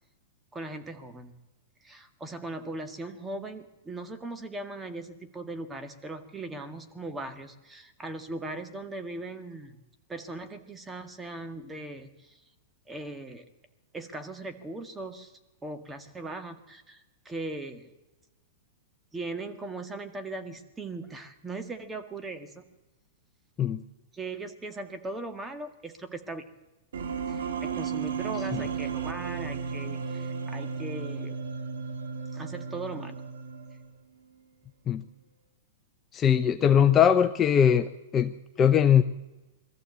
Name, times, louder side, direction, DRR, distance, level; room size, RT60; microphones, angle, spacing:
voice 1, 0.5-1.4 1.8-9.8 10.1-12.4 12.9-13.4 13.9-15.3 15.6-17.9 19.1-22.6 24.1-26.5 27.3-31.4 32.3-33.2 36.8-36.9, right 2 dB, 10° right, 7 dB, 1.8 m, -39 dB
sound 1, 26.9-34.0, right 6 dB, 80° right, 2.0 m, -34 dB
voice 2, 36.1-39.0, left 8 dB, 20° left, 8 dB, 0.7 m, -21 dB
22.0 x 14.0 x 8.3 m, 1.1 s
hypercardioid pair, 135°, 0 cm